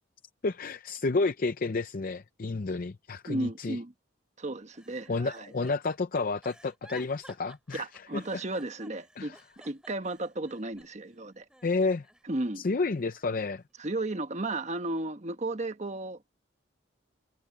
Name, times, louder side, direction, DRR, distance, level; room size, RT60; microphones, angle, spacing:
voice 1, 0.4-3.8 5.1-7.9 8.1-8.4 9.2-9.4 11.6-12.1 12.6-13.6, left 3 dB, 45° left, 0.5 m, -30 dB
voice 2, 3.3-3.9 4.4-5.5 7.7-11.4 12.3-12.6 13.8-16.3, right 2 dB, 35° right, 1.2 m, -34 dB
Giggle, 4.7-11.1 11.5-12.5 12.9-14.0 14.6-14.9, right 1 dB, 5° right, 2.9 m, -55 dB
head